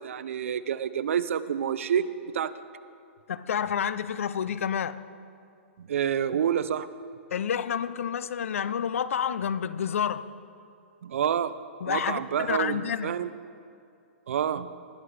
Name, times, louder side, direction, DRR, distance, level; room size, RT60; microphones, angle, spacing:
voice 1, 0.0-2.1 2.3-2.5 5.8-6.9 11.0-11.6 11.9-13.3 14.3-14.7, right 8 dB, 70° right, 0.5 m, -28 dB
voice 2, 3.3-5.0 7.3-10.2 11.8-12.2 12.5-13.1, left 8 dB, 75° left, 0.5 m, -29 dB
19.0 x 9.3 x 3.3 m
hypercardioid pair, 140°, 7 cm